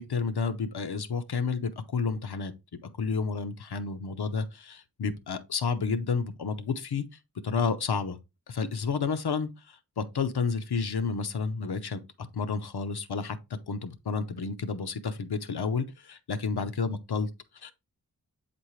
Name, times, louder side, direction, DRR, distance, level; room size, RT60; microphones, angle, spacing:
voice 1, 0.0-2.5 2.8-7.0 7.4-8.2 8.5-17.7, left 5 dB, 85° left, 0.8 m, -31 dB
8.1 x 4.3 x 3.1 m
wide cardioid pair, 60°, 38 cm